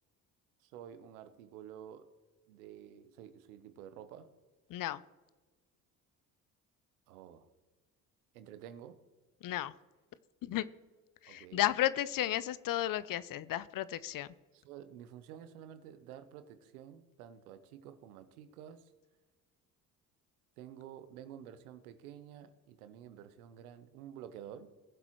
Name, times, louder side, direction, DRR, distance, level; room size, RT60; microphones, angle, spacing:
voice 1, 0.6-2.1 2.5-4.3 7.1-7.5 8.3-9.0 11.3-11.6 14.5-18.9 20.6-24.7, right 9 dB, 90° right, 11 dB, 1.0 m, -50 dB
voice 2, 4.7-5.0 9.4-9.7 10.4-10.7 11.2-14.3, left 13 dB, 50° left, 18 dB, 0.7 m, -33 dB
20.0 x 7.7 x 3.1 m, 1.3 s
hypercardioid pair, 70°, 43 cm